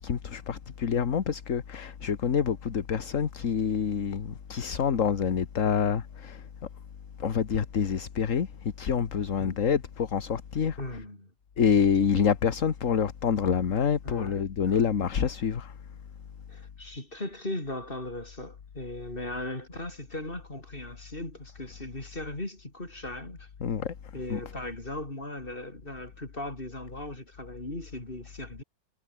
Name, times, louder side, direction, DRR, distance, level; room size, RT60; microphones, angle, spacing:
voice 1, 0.0-6.5 7.2-10.8 11.6-15.7 23.6-23.9 24.3-24.4, left 7 dB, 45° left, 1.6 m, -27 dB
voice 2, 9.4-9.7 10.8-11.3 14.0-14.8 16.5-23.5 24.1-28.6, left 1 dB, 30° left, 5.8 m, -38 dB
omnidirectional pair, 2.0 m